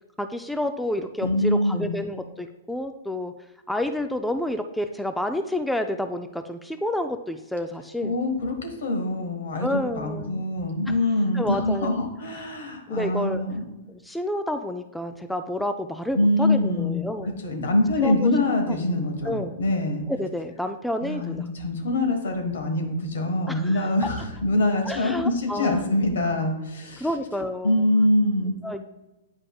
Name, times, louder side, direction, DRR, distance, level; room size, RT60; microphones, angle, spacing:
voice 1, 0.2-3.3 3.7-8.2 9.6-10.5 11.3-12.0 12.9-13.4 13.9-17.4 18.0-18.3 18.7-18.8 19.2-19.6 20.1-21.5 23.5-23.9 24.8-25.9 27.0-27.9 28.6-28.8, left 1 dB, ahead, 7 dB, 0.4 m, -29 dB
voice 2, 1.2-1.9 8.0-13.6 16.1-17.0 17.4-20.0 21.0-27.1 27.6-28.6, left 1 dB, 75° left, 4 dB, 1.4 m, -24 dB
8.5 x 5.2 x 2.3 m, 1.0 s
hypercardioid pair, 125°, 0 cm